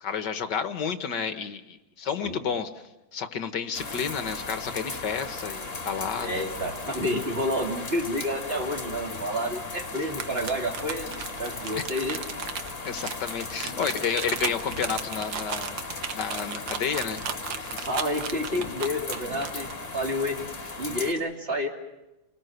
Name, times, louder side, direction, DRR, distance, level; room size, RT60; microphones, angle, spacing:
voice 1, 0.0-2.7 3.1-6.5 11.7-11.8 12.8-17.2 17.6-17.9, left 7 dB, 60° left, 10 dB, 1.6 m, -31 dB
sound 1, 3.7-21.1, left 3 dB, 35° left, 2.8 m, -37 dB
voice 2, 6.2-11.1 11.4-12.2 17.9-20.4 20.8-21.7, equal, 25° right, 2 dB, 3.0 m, -29 dB
sound 2, 10.1-19.7, right 7 dB, 60° right, 1.8 m, -34 dB
29.5 x 20.0 x 7.9 m, 1.0 s
omnidirectional pair, 2.4 m